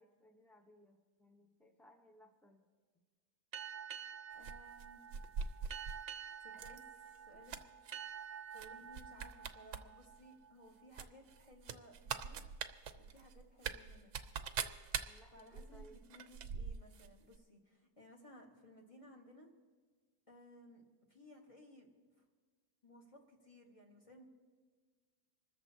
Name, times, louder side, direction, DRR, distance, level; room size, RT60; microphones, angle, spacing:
voice 1, 0.0-2.6 15.0-16.0, equal, ahead, 1 dB, 0.6 m, -63 dB
sound 1, 3.5-10.8, right 8 dB, 80° right, 0.3 m, -49 dB
voice 2, 4.3-5.0 6.4-7.5 8.5-12.4 13.0-14.1 15.3-19.5 20.3-20.8 21.1-22.2 22.8-24.3, left 1 dB, 20° left, 0 dB, 1.6 m, -60 dB
sound 2, 4.4-6.0 6.5-6.8 7.1-7.9 8.5-8.7 8.9-9.8 10.1-10.2 10.9-17.1 17.3-17.4, right 7 dB, 60° right, 0.9 m, -43 dB
25.5 x 13.5 x 2.8 m, 1.5 s
omnidirectional pair, 1.6 m